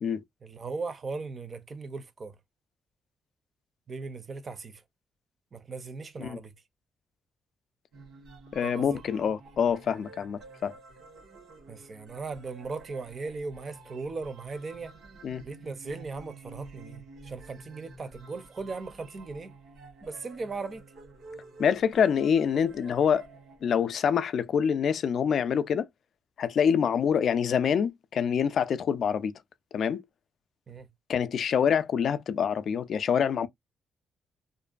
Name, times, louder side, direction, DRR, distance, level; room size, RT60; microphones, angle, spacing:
voice 1, 0.4-2.4 3.9-4.8 5.5-6.5 8.6-9.0 11.7-15.0 15.4-19.5 20.0-20.8 30.7-30.9, right 4 dB, 35° right, 0.5 m, -38 dB
sound 1, 7.9-24.0, right 3 dB, 70° right, 1.2 m, -50 dB
voice 2, 8.5-10.7 15.2-15.4 21.6-23.2 23.6-25.9 26.4-29.3 29.7-30.0 31.1-33.5, left 7 dB, 55° left, 0.3 m, -26 dB
2.5 x 2.2 x 2.4 m
cardioid pair, 115°, 0 cm